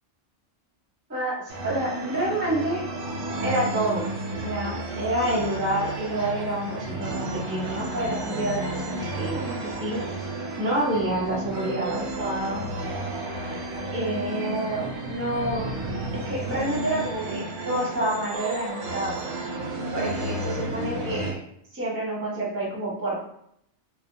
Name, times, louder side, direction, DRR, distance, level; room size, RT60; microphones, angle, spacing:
voice 1, 1.1-2.8 3.4-10.0 10.6-12.6 13.9-15.7 16.1-19.2 19.9-21.4 21.7-23.2, right 1 dB, 15° right, -4 dB, 0.5 m, -28 dB
sound 1, 1.5-21.3, right 2 dB, 70° right, 0.8 m, -32 dB
2.3 x 2.0 x 2.6 m, 0.73 s
omnidirectional pair, 1.2 m